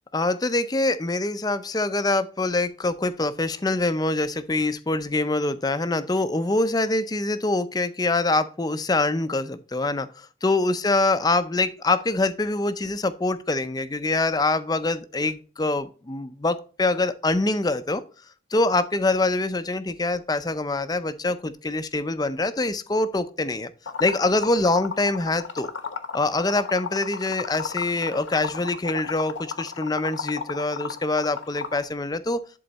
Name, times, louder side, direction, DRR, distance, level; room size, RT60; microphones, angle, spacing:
voice 1, 0.1-18.0 18.5-23.7 24.0-25.7 26.1-32.4, left 2 dB, 20° left, 12 dB, 0.5 m, -24 dB
Liquid, 23.9-31.8, left 5 dB, 85° left, 1.1 m, -33 dB
11.0 x 3.9 x 4.0 m, 0.38 s
head